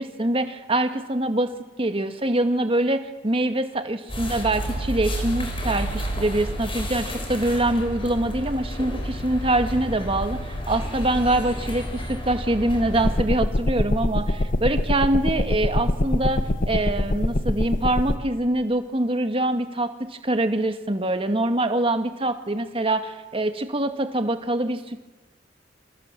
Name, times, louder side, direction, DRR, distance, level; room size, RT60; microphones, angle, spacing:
voice 1, 0.0-1.5 1.8-25.0, right 1 dB, 30° right, 7 dB, 2.0 m, -24 dB
sound 1, 4.1-13.2, equal, 30° left, 5.8 m, -30 dB
sound 2, 13.0-18.2, left 1 dB, 50° left, 1.2 m, -24 dB
29.0 x 26.0 x 7.6 m, 1.2 s
head